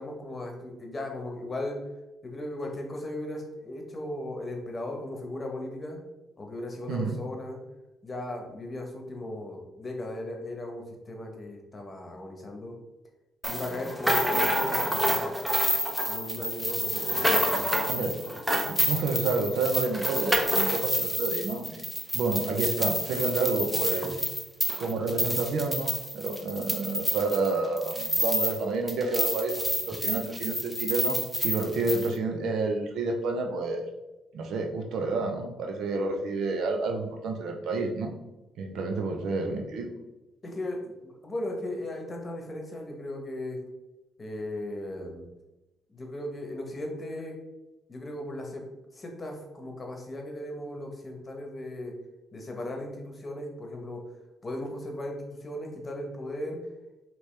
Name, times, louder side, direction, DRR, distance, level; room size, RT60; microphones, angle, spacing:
voice 1, 0.0-1.8 2.2-6.0 6.4-7.6 8.0-12.7 13.5-15.4 16.0-17.8 40.4-43.6 44.2-45.3 45.9-47.4 47.9-48.7 49.0-51.9 52.3-54.0 54.4-56.6, left 1 dB, 30° left, 1 dB, 1.0 m, -37 dB
sound 1, 13.4-28.6 28.9-32.1, equal, 5° right, 0.6 m, -28 dB
voice 2, 18.7-21.8 22.1-24.1 24.8-33.9 34.3-38.1 38.6-39.9, right 3 dB, 75° right, 3 dB, 0.6 m, -29 dB
4.9 x 3.0 x 3.3 m, 1.0 s
cardioid pair, 90°, 0 cm